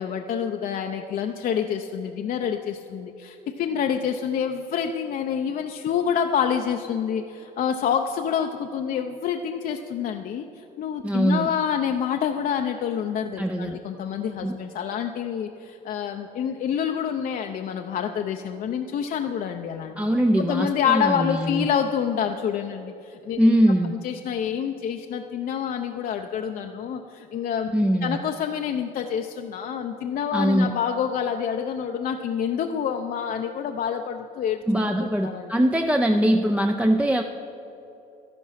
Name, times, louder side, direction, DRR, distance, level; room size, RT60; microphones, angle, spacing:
voice 1, 0.0-20.1 20.4-23.5 23.9-27.8 28.0-34.6 35.0-35.5, left 8 dB, 55° left, 4 dB, 0.6 m, -27 dB
voice 2, 11.0-11.5 13.4-13.8 14.4-14.6 20.0-21.7 23.4-23.9 27.7-28.2 30.3-30.7 34.7-37.2, right 1 dB, 5° right, 5 dB, 0.5 m, -22 dB
12.5 x 11.0 x 5.7 m, 2.9 s
cardioid pair, 110°, 17 cm